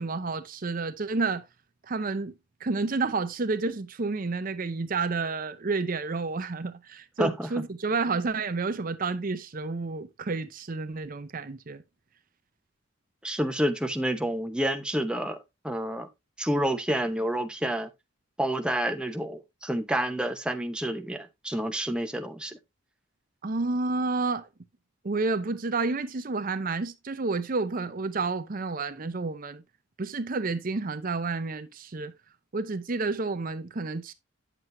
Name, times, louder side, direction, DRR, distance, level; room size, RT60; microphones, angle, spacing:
voice 1, 0.0-1.4 1.9-2.3 2.6-11.8 23.4-24.5 25.0-29.6 30.0-32.1 32.5-34.1, right 3 dB, 45° right, 0.6 m, -30 dB
voice 2, 7.2-7.5 13.2-16.1 16.4-17.9 18.4-22.6, right 1 dB, 5° right, 0.7 m, -29 dB
9.3 x 7.5 x 2.6 m
head